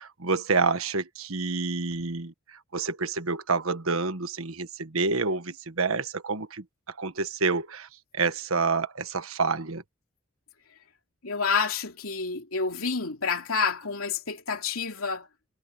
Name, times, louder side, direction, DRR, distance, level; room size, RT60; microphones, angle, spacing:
voice 1, 0.0-7.9 8.1-9.8, right 4 dB, 80° right, 1.4 m, -28 dB
voice 2, 11.2-15.3, left 5 dB, 90° left, 2.8 m, -29 dB
head